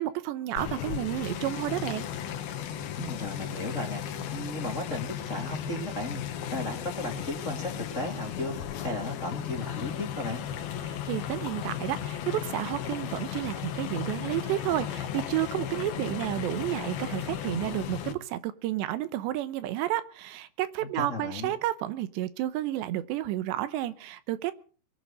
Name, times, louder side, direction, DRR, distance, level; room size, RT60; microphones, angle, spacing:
voice 1, 0.0-2.1 10.8-24.5, right 14 dB, 80° right, 13 dB, 3.1 m, -31 dB
sound 1, 0.6-18.1, left 9 dB, 65° left, 3.0 m, -35 dB
voice 2, 3.0-4.0 4.3-6.2 6.5-8.5 8.8-10.4 21.0-21.5, left 2 dB, 20° left, 2 dB, 2.4 m, -35 dB
23.0 x 8.7 x 6.7 m, 0.40 s
omnidirectional pair, 5.0 m